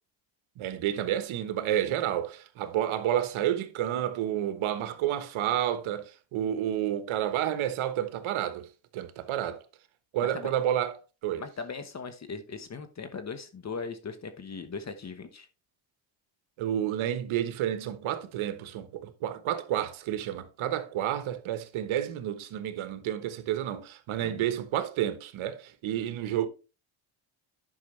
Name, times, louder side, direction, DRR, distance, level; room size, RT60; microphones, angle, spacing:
voice 1, 0.6-8.7 8.9-9.6 10.1-10.9 11.2-11.4 16.6-26.5, right 11 dB, 70° right, 1.3 m, -30 dB
voice 2, 11.4-15.5 24.2-24.5, left 5 dB, 35° left, 1.2 m, -39 dB
10.5 x 5.6 x 3.2 m
cardioid pair, 105°, 49 cm